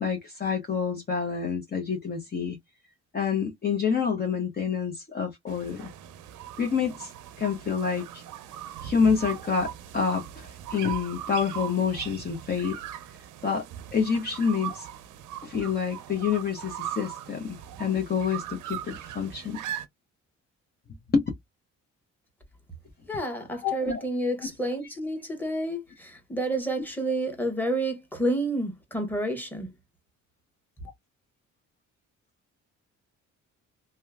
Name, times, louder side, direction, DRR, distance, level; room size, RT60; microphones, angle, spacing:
voice 1, 0.0-2.6 3.1-5.9 6.6-7.1 7.4-8.2 8.8-12.8 13.4-13.7 13.9-14.9 15.4-19.6 21.1-21.3 23.6-24.0, left 6 dB, 30° left, 0.8 m, -27 dB
sound 1, 5.5-19.9, right 11 dB, 85° right, 0.6 m, -40 dB
voice 2, 23.1-29.7, right 1 dB, 5° left, 1.3 m, -29 dB
2.9 x 2.2 x 2.3 m
cardioid pair, 90°, 30 cm